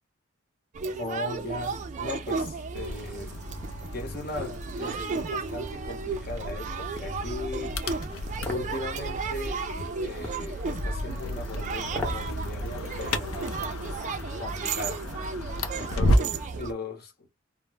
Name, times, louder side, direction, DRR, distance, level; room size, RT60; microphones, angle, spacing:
sound 1, 0.7-16.7, right 4 dB, 35° right, 0.3 m, -34 dB
voice 1, 1.0-3.4 3.9-7.8 8.4-9.6 10.0-13.8 14.4-15.0 15.8-17.3, left 2 dB, 50° left, 0.9 m, -38 dB
sound 2, 2.8-16.5, equal, 85° left, 0.5 m, -33 dB
sound 3, 8.5-8.7 10.2-10.5 11.9-12.3 12.7-12.8, left 2 dB, 5° left, 0.7 m, -35 dB
2.1 x 2.0 x 3.3 m
head